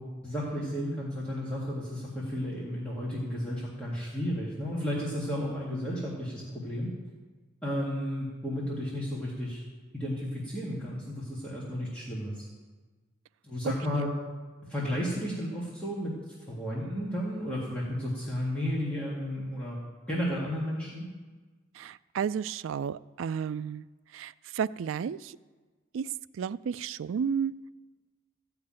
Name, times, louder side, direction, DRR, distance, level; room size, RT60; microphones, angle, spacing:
voice 1, 0.2-6.9 7.6-9.6 9.9-12.4 13.4-14.1 14.7-16.1 16.5-19.8 20.1-21.1, equal, 5° left, -7 dB, 1.9 m, -33 dB
voice 2, 13.6-14.1 21.8-23.8 24.1-25.4 25.9-26.1 26.4-27.5, right 7 dB, 80° right, 17 dB, 0.3 m, -32 dB
14.5 x 5.9 x 8.8 m, 1.3 s
head